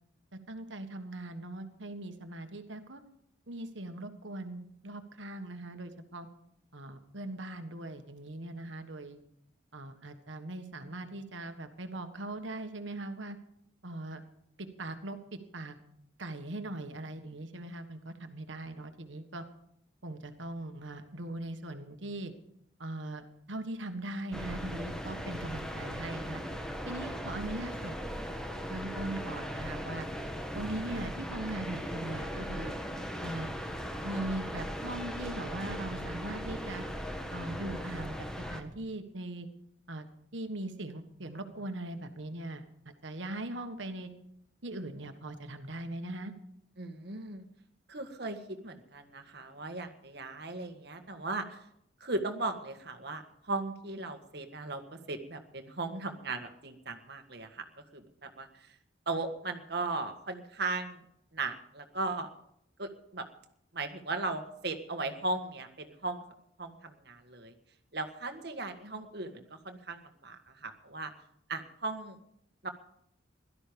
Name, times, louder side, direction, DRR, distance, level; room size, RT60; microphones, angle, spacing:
voice 1, 0.5-3.0 3.5-6.3 6.7-9.2 9.7-13.4 13.8-14.2 14.6-15.8 16.2-19.4 20.0-22.3 22.8-26.4 26.8-27.9 28.7-30.1 30.5-32.7 33.2-33.5 34.0-36.8 37.3-38.2 38.5-39.5 39.9-40.1 40.3-44.1 44.6-46.3, right 1 dB, 80° right, 7 dB, 1.6 m, -40 dB
sound 1, 24.3-38.6, equal, 5° left, 1.4 m, -38 dB
voice 2, 46.8-47.5 47.9-51.6 52.0-57.7 57.9-58.7 59.1-61.0 61.3-62.3 62.8-63.3 63.7-66.2 66.6-67.5 67.9-71.1 71.5-72.2 72.6-72.7, right 3 dB, 55° right, 6 dB, 1.7 m, -37 dB
17.0 x 12.5 x 5.2 m, 0.74 s
head